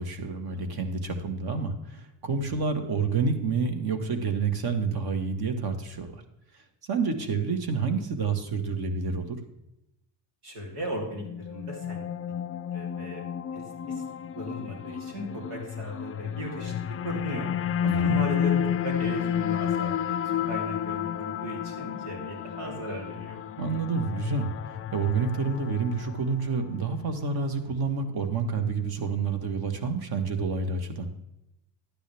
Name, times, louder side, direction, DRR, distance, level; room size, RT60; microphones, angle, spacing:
voice 1, 0.0-6.1 6.9-9.4 17.8-18.2 23.6-24.5 24.9-31.1, right 4 dB, 50° right, 7 dB, 1.7 m, -28 dB
voice 2, 10.4-12.0 12.7-13.2 13.5-14.0 14.4-17.5 17.8-20.0 20.5-23.4, equal, 90° right, 0 dB, 3.6 m, -36 dB
sound 1, 11.2-26.5, left 9 dB, 30° left, 0.4 m, -31 dB
11.5 x 9.8 x 3.5 m, 0.88 s
cardioid pair, 100°, 47 cm